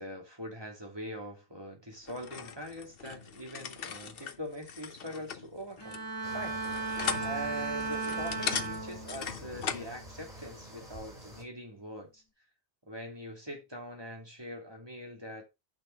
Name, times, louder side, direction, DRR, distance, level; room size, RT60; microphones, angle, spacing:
voice 1, 0.0-6.0 6.3-6.6 7.2-12.2 12.8-15.5, equal, 25° right, 2.8 m, -42 dB
sound 1, 2.0-9.9, left 7 dB, 60° left, 1.0 m, -39 dB
Bowed string instrument, 5.8-9.3 9.8-10.2, right 3 dB, 25° left, 1.8 m, -36 dB
sound 2, 6.2-11.4, right 1 dB, 40° right, 4.8 m, -49 dB
9.3 x 5.8 x 3.4 m
omnidirectional pair, 1.1 m